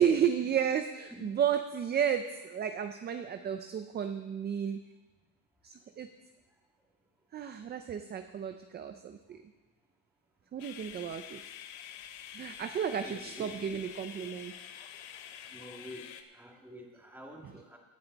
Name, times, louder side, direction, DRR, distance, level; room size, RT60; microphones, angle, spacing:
voice 1, 0.0-4.8 5.6-6.1 7.3-9.4 10.5-11.4 12.3-14.5, right 8 dB, 25° right, 8 dB, 0.4 m, -32 dB
sound 1, 10.6-16.2, left 10 dB, 85° left, 1.0 m, -47 dB
voice 2, 13.0-13.8 15.5-17.8, equal, 5° right, 0 dB, 1.8 m, -49 dB
17.0 x 9.3 x 4.0 m, 1.2 s
cardioid pair, 145°, 46 cm